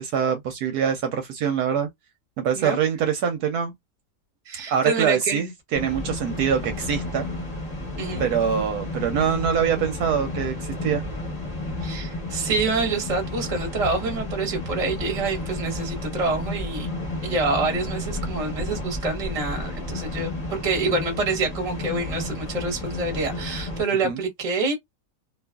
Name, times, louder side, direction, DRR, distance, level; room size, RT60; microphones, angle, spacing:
voice 1, 0.0-1.9 2.4-3.7 4.7-7.3 8.2-11.0 24.0-24.2, right 7 dB, 70° right, 1.0 m, -24 dB
voice 2, 4.5-5.4 6.2-6.3 8.0-8.2 11.8-16.9 17.2-24.7, right 3 dB, 30° right, 0.8 m, -27 dB
sound 1, 5.7-23.8, left 2 dB, 30° left, 0.8 m, -32 dB
2.7 x 2.4 x 2.2 m
omnidirectional pair, 1.8 m